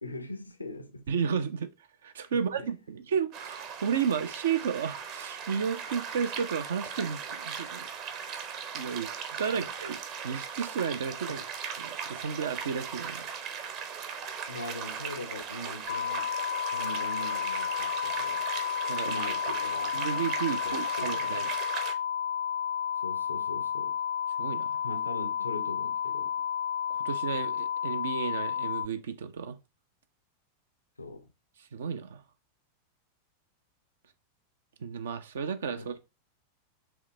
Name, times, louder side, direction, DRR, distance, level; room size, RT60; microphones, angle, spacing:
voice 1, 0.0-1.1 2.3-2.8 9.5-9.7 11.3-11.4 14.5-16.3 16.7-18.5 19.0-20.1 20.5-21.4 23.0-24.0 24.8-26.3 31.0-31.3 35.8-36.0, left 2 dB, 80° left, 0.7 m, -41 dB
voice 2, 1.1-1.7 2.0-7.9 8.7-11.4 11.8-13.3 18.9-19.1 19.9-21.5 24.4-24.8 26.9-29.6 31.6-32.2 34.8-36.0, right 7 dB, 65° right, 0.6 m, -32 dB
sound 1, 3.3-21.9, right 7 dB, 40° right, 0.9 m, -38 dB
sound 2, 15.9-28.9, left 8 dB, 50° left, 0.5 m, -32 dB
5.0 x 3.3 x 3.2 m
figure-of-eight pair, 90°, 0 cm